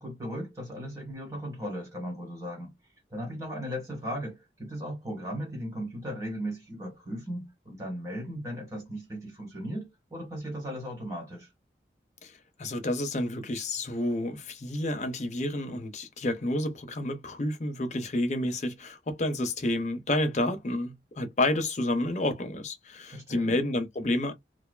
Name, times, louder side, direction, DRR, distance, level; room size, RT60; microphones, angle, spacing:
voice 1, 0.0-2.7 3.1-11.5 23.1-23.6, equal, 15° right, 1.3 m, -37 dB
voice 2, 12.2-24.3, left 1 dB, 40° left, 0.5 m, -30 dB
2.4 x 2.3 x 2.3 m
head